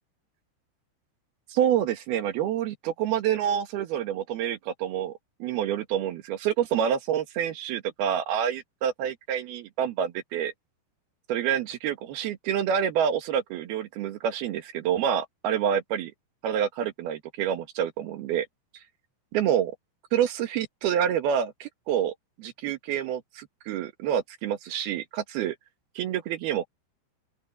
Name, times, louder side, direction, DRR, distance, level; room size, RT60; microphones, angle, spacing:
voice 1, 1.5-10.5 11.3-16.1 16.4-18.5 19.3-19.7 20.1-25.6 26.0-26.7, right 9 dB, 60° right, 3.0 m, -27 dB
open air
omnidirectional pair, 5.6 m